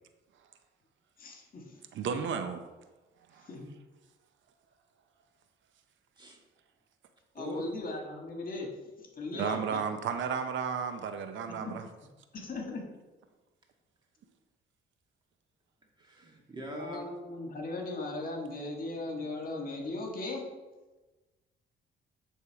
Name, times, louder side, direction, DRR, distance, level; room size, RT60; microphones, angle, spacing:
voice 1, 1.2-1.6 3.5-3.7 7.4-8.7 9.2-9.8 11.6-11.7 12.3-12.8 16.7-20.5, left 2 dB, 45° left, 1 dB, 1.6 m, -38 dB
voice 2, 1.9-2.6 3.3-3.5 9.4-11.9, right 6 dB, 70° right, 8 dB, 0.6 m, -33 dB
voice 3, 7.4-7.7 9.3-9.4 16.0-17.0, right 2 dB, 20° right, -1 dB, 1.9 m, -42 dB
9.6 x 3.6 x 4.7 m, 1.2 s
cardioid pair, 90°, 20 cm